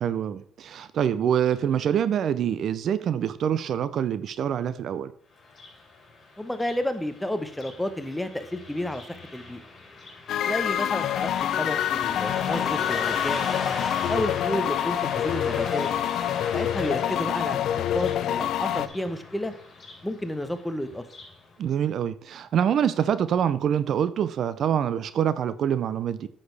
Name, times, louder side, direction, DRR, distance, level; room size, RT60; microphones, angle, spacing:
voice 1, 0.0-5.1 21.6-26.3, right 9 dB, 60° right, 0.5 m, -25 dB
Car passing by, 5.4-21.4, left 3 dB, 40° left, 3.4 m, -38 dB
voice 2, 6.4-9.6 10.4-11.3 11.6-13.5 14.1-15.9 16.5-19.5 20.0-21.1, left 1 dB, 5° left, 0.9 m, -31 dB
sound 1, 10.3-18.9, left 11 dB, 70° left, 0.4 m, -26 dB
9.5 x 6.3 x 3.3 m
supercardioid pair, 80°, 0 cm